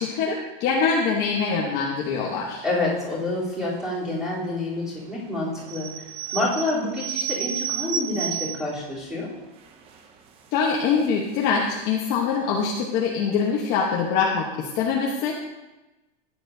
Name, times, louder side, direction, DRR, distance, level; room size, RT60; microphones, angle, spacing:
voice 1, 0.0-2.6 10.5-15.5, left 5 dB, 30° left, -2 dB, 1.1 m, -24 dB
voice 2, 2.6-5.9 6.3-9.3, left 2 dB, ahead, -9 dB, 3.5 m, -27 dB
sound 1, 5.6-8.8 9.3-9.4 9.6-10.0 10.7-11.1 11.5-11.6 11.7-11.8, right 8 dB, 20° right, 0.5 m, -31 dB
15.0 x 10.0 x 2.7 m, 1.1 s
supercardioid pair, 170°, 30 cm